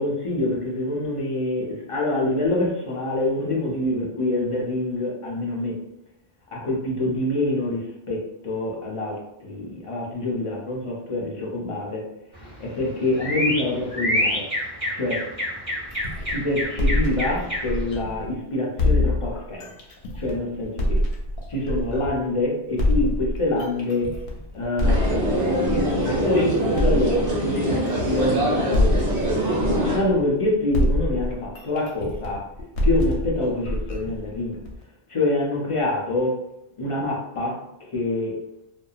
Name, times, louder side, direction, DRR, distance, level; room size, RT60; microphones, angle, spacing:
voice 1, 0.0-5.7 6.5-12.0 12.6-14.4 14.9-15.2 16.2-19.7 20.2-21.0 21.5-24.1 24.5-29.3 29.8-32.4 32.8-34.6 35.1-36.4 36.8-37.6 37.9-38.4, left 2 dB, 40° left, -3 dB, 0.5 m, -26 dB
sound 1, 12.3-17.9, left 1 dB, 30° right, 1.1 m, -28 dB
sound 2, 15.9-18.3 18.8-22.3 22.8-26.3 26.7-30.4 30.7-34.8, left 1 dB, 65° left, 0.8 m, -25 dB
sound 3, 24.8-30.0, right 1 dB, 60° right, 1.0 m, -23 dB
2.7 x 2.2 x 2.3 m, 0.83 s
omnidirectional pair, 1.2 m